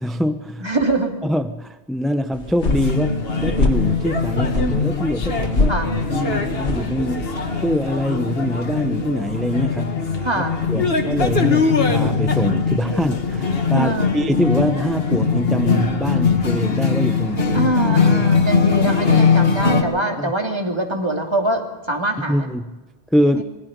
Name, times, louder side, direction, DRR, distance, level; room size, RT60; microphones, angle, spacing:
voice 1, 0.0-0.7 1.2-5.8 6.1-7.3 7.6-10.0 10.3-17.7 18.1-18.2 19.1-19.3 20.2-20.3 22.2-22.8 23.1-23.4, equal, ahead, 9 dB, 0.6 m, -24 dB
voice 2, 0.6-1.2 5.7-5.9 10.2-10.6 13.7-14.2 17.5-22.5 23.3-23.4, right 1 dB, 25° right, 2 dB, 2.8 m, -23 dB
sound 1, 2.3-7.7, left 3 dB, 80° left, 2.2 m, -25 dB
sound 2, 2.7-19.8, left 5 dB, 65° left, 2.1 m, -21 dB
26.5 x 21.0 x 5.3 m, 1.2 s
omnidirectional pair, 1.1 m